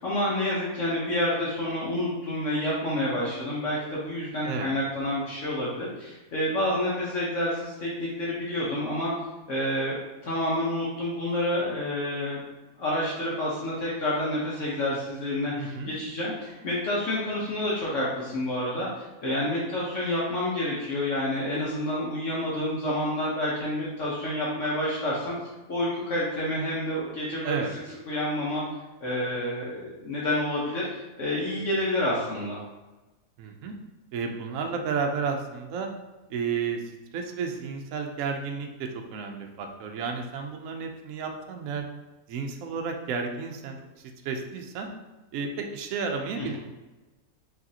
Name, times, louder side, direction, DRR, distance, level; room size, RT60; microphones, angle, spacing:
voice 1, 0.0-9.1 9.5-12.4 12.8-25.3 25.7-27.6 28.1-28.6 29.0-32.6 46.4-46.6, left 1 dB, 55° left, -6 dB, 1.2 m, -29 dB
voice 2, 15.6-15.9 27.4-27.7 33.4-33.7 34.1-35.9 36.3-36.8 37.1-41.8 42.3-44.9 45.3-46.6, right 5 dB, 65° right, 3 dB, 0.9 m, -32 dB
5.1 x 3.2 x 2.8 m, 1.1 s
omnidirectional pair, 1.6 m